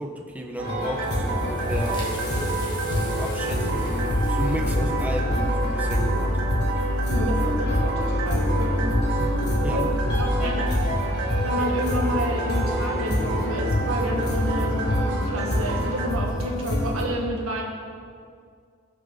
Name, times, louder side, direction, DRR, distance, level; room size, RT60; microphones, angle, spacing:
voice 1, 0.0-2.2 3.0-6.3 9.6-10.8, equal, 5° right, 1 dB, 1.0 m, -34 dB
sound 1, 0.6-17.0, equal, 50° left, 1.5 m, -27 dB
sound 2, 0.6-16.1, right 1 dB, 60° right, 1.9 m, -28 dB
sound 3, 0.9-6.5, left 1 dB, 20° left, 2.1 m, -44 dB
voice 2, 7.1-9.0 9.7-9.8 10.2-10.6 11.4-17.6, equal, 80° right, -1 dB, 1.9 m, -30 dB
19.5 x 6.9 x 4.0 m, 2.2 s
head